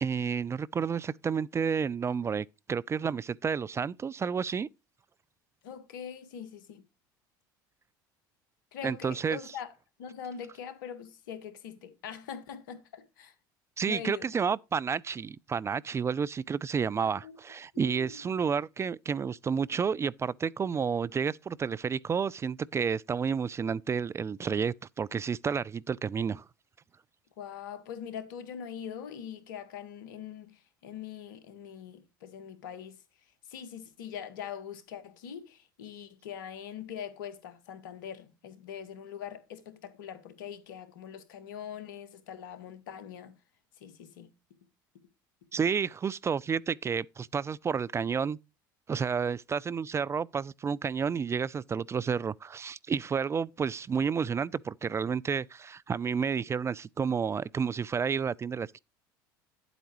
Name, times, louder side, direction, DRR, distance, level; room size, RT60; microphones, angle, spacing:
voice 1, 0.0-4.7 8.8-9.4 13.8-26.4 45.5-48.4 48.9-58.8, right 6 dB, 25° right, 0.4 m, -30 dB
voice 2, 5.6-6.8 8.7-9.7 10.0-13.3 13.8-14.3 17.0-17.3 17.7-18.2 27.4-33.0 33.5-43.3 43.8-44.3, left 8 dB, 80° left, 1.6 m, -42 dB
10.5 x 8.0 x 3.0 m
hypercardioid pair, 75°, 11 cm